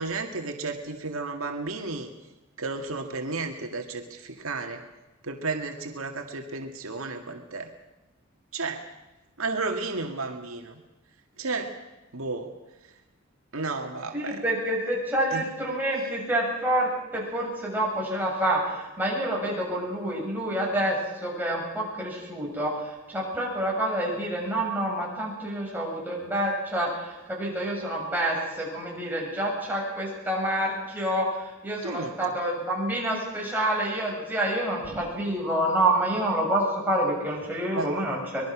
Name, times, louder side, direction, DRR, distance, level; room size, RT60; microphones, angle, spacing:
voice 1, 0.0-2.1 2.6-4.8 5.2-7.7 8.5-8.9 9.4-10.7 11.4-11.8 12.1-12.5 13.5-14.4 15.3-15.4 31.8-32.1 37.7-37.9, right 3 dB, 85° right, 4 dB, 2.1 m, -32 dB
voice 2, 14.1-22.7 23.1-38.5, right 1 dB, 10° right, -3 dB, 7.2 m, -28 dB
24.5 x 21.0 x 6.2 m, 1.1 s
head